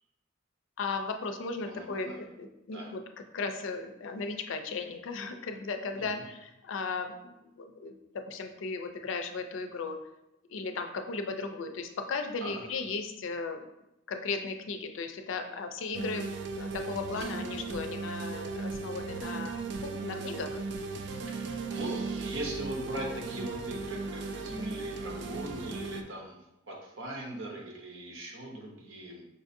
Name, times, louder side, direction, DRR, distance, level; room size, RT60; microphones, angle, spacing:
voice 1, 0.8-3.0 3.3-7.1 7.4-8.0 8.3-10.0 10.5-13.7 14.1-16.3 16.5-20.6, left 4 dB, 70° left, 6 dB, 0.4 m, -36 dB
voice 2, 1.7-2.2 2.7-2.9 6.0-6.2 12.4-12.6 17.2-17.3 21.3-26.4 26.7-29.2, right 1 dB, 70° right, 0 dB, 0.8 m, -40 dB
sound 1, 15.9-26.0, right 3 dB, 55° right, 0.3 m, -37 dB
5.3 x 2.5 x 2.6 m, 0.88 s
head